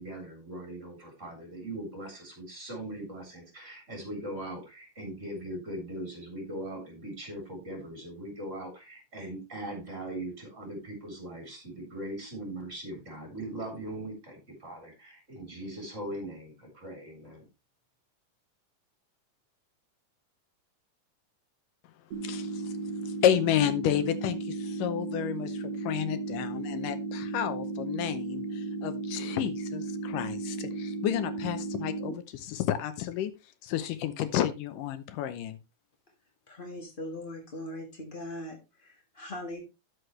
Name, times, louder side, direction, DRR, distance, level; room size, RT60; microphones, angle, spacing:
voice 1, 0.0-17.5, right 1 dB, 20° right, 2 dB, 3.7 m, -40 dB
sound 1, 22.1-32.1, right 3 dB, 55° right, 2.1 m, -35 dB
voice 2, 22.2-22.7 23.0-33.3 33.6-35.6, left 11 dB, 80° left, 11 dB, 2.4 m, -31 dB
voice 3, 36.5-39.6, left 1 dB, 40° left, 1 dB, 0.7 m, -40 dB
12.5 x 6.4 x 3.2 m, 0.26 s
omnidirectional pair, 3.9 m